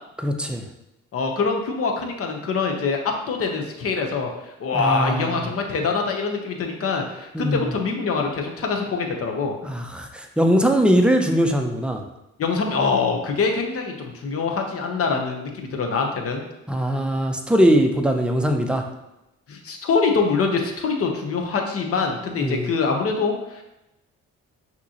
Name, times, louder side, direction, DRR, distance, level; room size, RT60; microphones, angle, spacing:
voice 1, 0.2-0.6 4.7-5.4 7.3-7.6 9.6-12.0 16.7-18.8 22.4-22.7, equal, 5° right, 4 dB, 0.5 m, -21 dB
voice 2, 1.1-9.5 12.4-16.4 19.5-23.6, left 4 dB, 50° left, 3 dB, 0.9 m, -24 dB
5.8 x 2.9 x 2.9 m, 0.93 s
cardioid pair, 90°, 30 cm